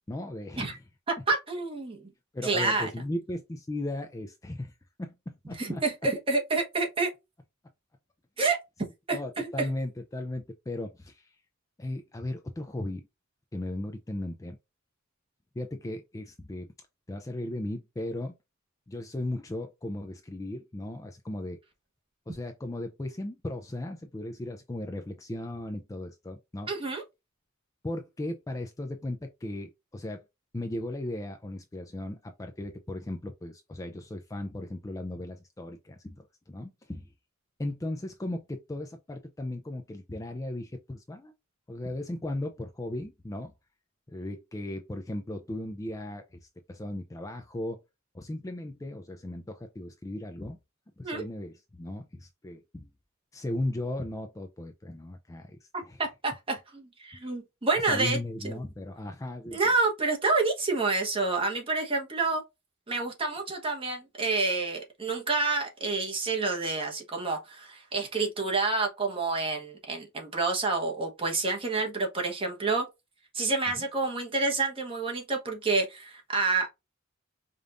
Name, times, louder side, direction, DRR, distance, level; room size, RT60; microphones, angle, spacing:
voice 1, 0.1-0.8 2.3-5.8 9.1-11.4 11.8-13.1 13.5-14.6 15.5-16.7 17.1-18.3 18.9-21.6 22.3-26.7 27.8-30.2 30.5-37.1 37.6-41.3 41.7-43.5 44.1-47.8 48.1-50.6 51.0-52.9 53.3-56.0 57.2-57.3 57.9-59.6 73.8-73.9, left 1 dB, 15° left, 0.4 m, -36 dB
voice 2, 1.1-2.0 2.4-2.9 5.6-7.1 8.4-8.6 9.1-9.2 9.6-9.7 26.7-27.0 51.0-51.2 56.0-58.2 58.4-58.5 59.5-62.4 62.9-72.9 73.3-76.7, right 3 dB, 25° right, 1.1 m, -28 dB
5.1 x 2.5 x 2.5 m
head